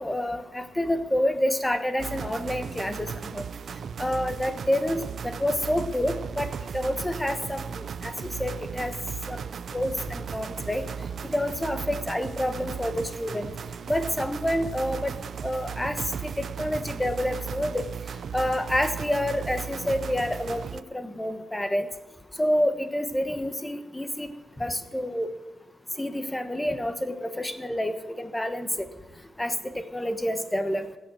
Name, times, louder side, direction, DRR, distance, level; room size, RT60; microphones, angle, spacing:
voice 1, 0.0-3.1 3.3-3.4 4.0-6.5 6.7-8.9 9.3-9.4 9.7-10.9 11.3-13.5 13.9-15.1 15.4-17.9 18.3-21.9 22.4-24.3 24.6-25.3 26.0-28.7 29.4-29.5 29.9-30.8, left 1 dB, 10° left, 9 dB, 1.2 m, -28 dB
sound 1, 2.0-20.8, right 7 dB, 65° right, 0.5 m, -36 dB
17.0 x 7.1 x 7.7 m, 1.0 s
cardioid pair, 95°, 0 cm